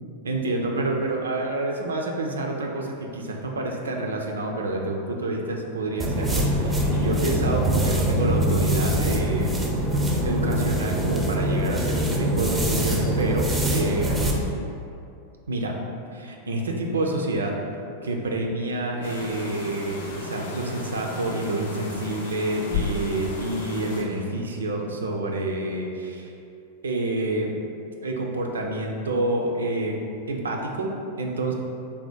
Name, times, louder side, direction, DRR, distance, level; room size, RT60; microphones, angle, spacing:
voice 1, 0.2-9.5 10.2-13.5 13.7-14.5 15.5-15.7 16.1-17.5 18.0-26.3 26.8-27.5 28.0-30.0 30.3-30.9 31.2-31.5, right 2 dB, 70° right, 1 dB, 0.4 m, -28 dB
sound 1, 6.0-14.4, equal, 10° right, 0.5 m, -23 dB
sound 2, 19.0-24.0, left 3 dB, 60° left, 0.5 m, -34 dB
3.4 x 2.1 x 4.3 m, 2.6 s
figure-of-eight pair, 90°, 0 cm